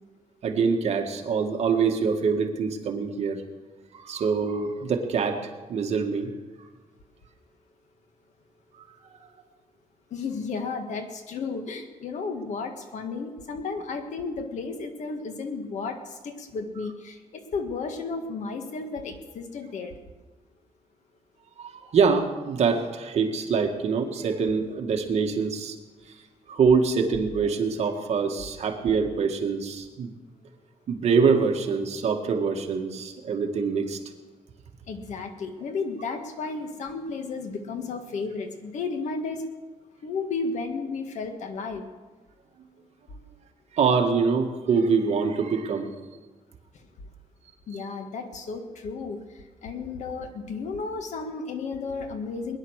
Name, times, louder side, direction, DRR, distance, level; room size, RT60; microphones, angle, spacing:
voice 1, 0.4-3.4 3.9-6.3 21.6-25.8 26.5-30.1 30.9-34.0 43.7-45.9, right 5 dB, 60° right, 3 dB, 1.9 m, -24 dB
voice 2, 10.1-20.0 34.9-39.5 40.0-41.9 47.7-52.6, left 4 dB, 70° left, 6 dB, 1.8 m, -33 dB
21.0 x 10.5 x 6.5 m, 1.2 s
wide cardioid pair, 160°, 12 cm